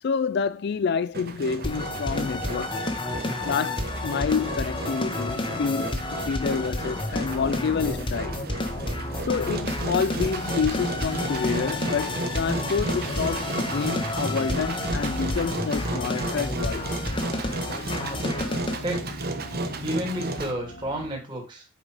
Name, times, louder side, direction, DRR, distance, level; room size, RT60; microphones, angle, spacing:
voice 1, 0.0-2.8 3.4-8.4 9.2-17.0, left 6 dB, 55° left, 0.3 m, -28 dB
Engine, 1.1-20.5, right 2 dB, 50° right, 1.1 m, -33 dB
sound 1, 1.6-18.8, left 2 dB, 25° left, 1.2 m, -31 dB
sound 2, 4.2-21.1, left 1 dB, 75° left, 2.0 m, -39 dB
voice 2, 18.8-19.2 19.8-21.6, right 1 dB, 25° right, 2.8 m, -31 dB
8.4 x 5.4 x 4.9 m
head